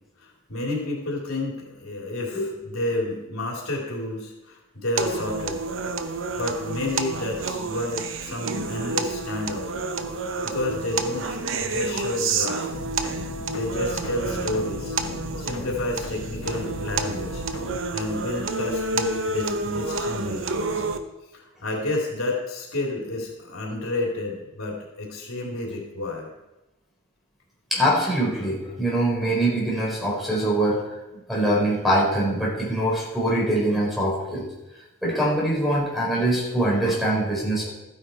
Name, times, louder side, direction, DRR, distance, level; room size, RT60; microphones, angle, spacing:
voice 1, 0.2-5.6 6.4-9.7 10.4-12.7 13.5-15.0 15.4-20.8 21.3-26.3, left 2 dB, 90° left, -1 dB, 3.1 m, -30 dB
sound 1, 5.0-21.0, right 3 dB, 65° right, 0.9 m, -29 dB
sound 2, 12.7-17.8, left 1 dB, 70° left, 1.3 m, -36 dB
voice 2, 27.7-30.8 31.3-34.5 35.0-37.7, right 1 dB, ahead, -4 dB, 3.9 m, -23 dB
14.0 x 9.7 x 4.4 m, 0.99 s
head